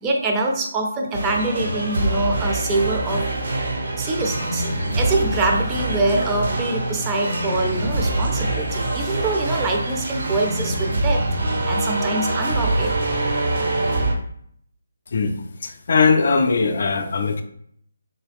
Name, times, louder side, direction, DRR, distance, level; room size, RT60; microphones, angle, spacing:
voice 1, 0.0-3.3 4.0-11.3 11.7-12.9, right 2 dB, 15° right, 1 dB, 0.5 m, -24 dB
sound 1, 1.1-14.1, right 2 dB, 55° right, 0.8 m, -24 dB
sound 2, 4.4-13.0, right 1 dB, 80° right, 0.9 m, -41 dB
voice 2, 15.1-17.4, left 4 dB, 55° left, 7 dB, 0.4 m, -20 dB
3.8 x 2.3 x 3.4 m, 0.67 s
figure-of-eight pair, 150°, 0 cm